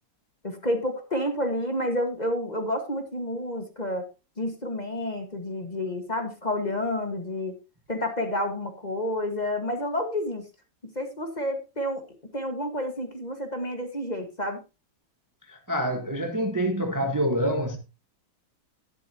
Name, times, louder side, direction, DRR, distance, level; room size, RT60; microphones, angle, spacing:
voice 1, 0.4-4.1 4.4-7.5 7.9-10.4 10.8-12.0 12.3-14.6, left 1 dB, 25° left, 1.5 m, -29 dB
voice 2, 15.5-17.8, right 1 dB, 10° right, 1.0 m, -26 dB
12.0 x 11.5 x 2.9 m
omnidirectional pair, 2.0 m